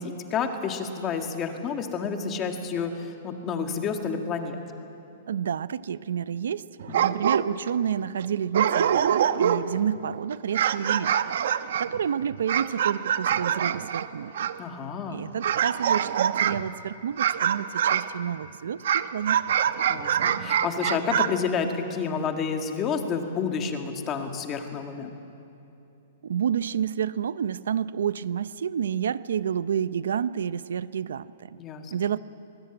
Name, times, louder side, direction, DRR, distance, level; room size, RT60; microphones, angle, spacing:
voice 1, 0.0-4.6 14.6-15.2 19.9-25.1 31.6-31.9, left 6 dB, 20° left, 5 dB, 1.8 m, -30 dB
voice 2, 5.3-6.6 7.0-11.4 11.8-14.5 15.1-19.4 26.2-31.6 31.9-32.2, right 8 dB, 85° right, 17 dB, 0.6 m, -29 dB
sound 1, 6.8-7.7 8.2-8.3 8.5-9.8 10.3-14.6 15.4-16.7 17.2-18.1 18.8-21.3, right 9 dB, 65° right, 0.9 m, -25 dB
22.5 x 20.5 x 9.0 m, 2.8 s
hypercardioid pair, 165°, 0 cm